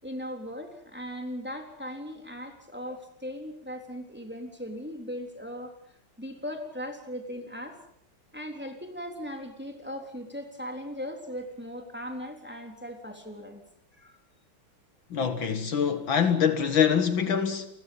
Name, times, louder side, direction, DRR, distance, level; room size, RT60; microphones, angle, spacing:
voice 1, 0.0-5.8 6.2-7.8 8.3-13.6 13.9-14.2, equal, 5° right, 3.8 m, -38 dB
voice 2, 15.1-17.7, left 7 dB, 65° left, 2.3 m, -24 dB
29.5 x 21.0 x 5.6 m
omnidirectional pair, 2.3 m